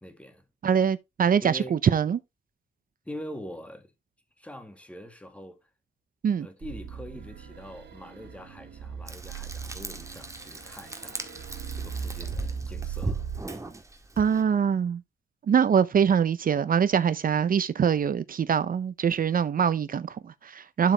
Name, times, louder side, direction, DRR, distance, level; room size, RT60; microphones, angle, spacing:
voice 1, 0.0-0.4 1.4-1.8 3.0-3.9 4.4-5.6 6.4-11.3 11.7-13.2, equal, 5° left, 1.7 m, -43 dB
voice 2, 0.6-2.2 6.2-6.5 14.2-15.0 15.5-20.9, right 7 dB, 55° right, 0.6 m, -24 dB
sound 1, 6.6-13.4, right 7 dB, 85° right, 1.9 m, -38 dB
Frying (food), 9.1-14.4, right 2 dB, 20° right, 1.7 m, -38 dB
12.0 x 4.9 x 3.4 m
wide cardioid pair, 160°, 17 cm